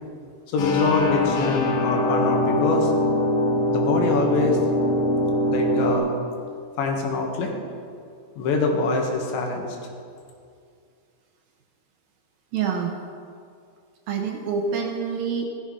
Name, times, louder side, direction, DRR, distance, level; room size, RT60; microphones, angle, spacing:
voice 1, 0.5-2.9 3.7-4.6 5.5-6.2 6.8-7.5 8.4-9.8, left 3 dB, 85° left, 1 dB, 4.1 m, -24 dB
sound 1, 0.6-6.0, left 1 dB, 60° left, 2.8 m, -23 dB
voice 2, 12.5-12.9 14.1-15.4, right 6 dB, 70° right, 2 dB, 2.5 m, -26 dB
16.0 x 14.0 x 5.4 m, 2.3 s
omnidirectional pair, 5.1 m